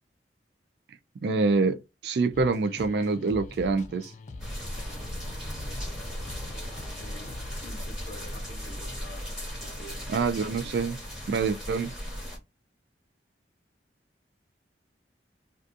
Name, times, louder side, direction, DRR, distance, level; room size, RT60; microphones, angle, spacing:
voice 1, 1.2-4.1 10.1-11.0 11.3-11.9, right 4 dB, 65° right, 0.3 m, -26 dB
sound 1, 2.3-7.9, left 3 dB, 45° left, 0.4 m, -44 dB
sound 2, 4.4-12.4, equal, 5° right, 1.0 m, -37 dB
voice 2, 6.5-9.3 9.6-10.0, equal, 65° left, 0.7 m, -48 dB
2.4 x 2.4 x 2.5 m
head